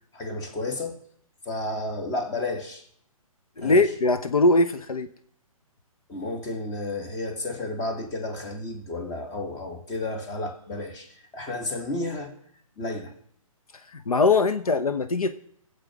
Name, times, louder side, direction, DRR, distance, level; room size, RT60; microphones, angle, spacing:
voice 1, 0.1-1.0 1.5-2.8 3.6-3.8 6.1-11.1 11.3-12.3 12.8-13.1, left 2 dB, 20° left, 6 dB, 1.9 m, -32 dB
voice 2, 3.6-5.1 13.9-15.3, left 3 dB, 80° left, 10 dB, 0.9 m, -21 dB
20.5 x 8.2 x 4.8 m, 0.66 s
figure-of-eight pair, 135°, 18 cm